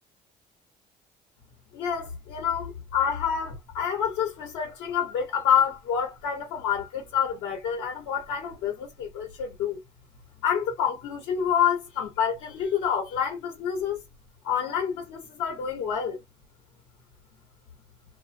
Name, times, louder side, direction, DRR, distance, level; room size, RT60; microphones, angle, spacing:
voice 1, 1.7-9.8 10.4-14.0 14.4-16.2, left 8 dB, 90° left, 1.2 m, -28 dB
2.4 x 2.1 x 2.7 m
cardioid pair, 110°, 17 cm